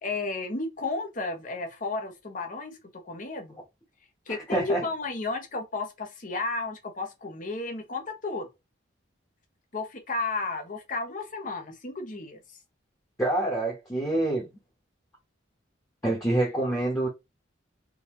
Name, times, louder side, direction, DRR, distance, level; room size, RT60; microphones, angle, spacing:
voice 1, 0.0-3.6 4.3-8.5 9.7-12.4, left 3 dB, 40° left, 0.8 m, -33 dB
voice 2, 4.3-4.9 13.2-14.5 16.0-17.1, right 1 dB, 15° left, 1.0 m, -26 dB
3.7 x 2.8 x 3.0 m
head